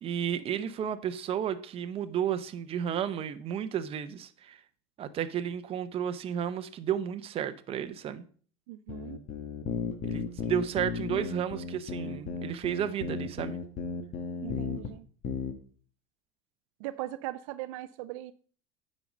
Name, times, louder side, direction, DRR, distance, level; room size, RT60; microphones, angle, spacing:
voice 1, 0.0-4.6 5.0-8.2 10.0-13.6, right 9 dB, 35° right, 0.8 m, -32 dB
voice 2, 8.7-9.2 14.4-15.1 16.8-18.3, right 16 dB, 75° right, 0.5 m, -39 dB
sound 1, 8.9-14.9 15.2-15.5, left 6 dB, 45° left, 1.3 m, -35 dB
9.2 x 5.4 x 5.2 m
supercardioid pair, 125°, 17 cm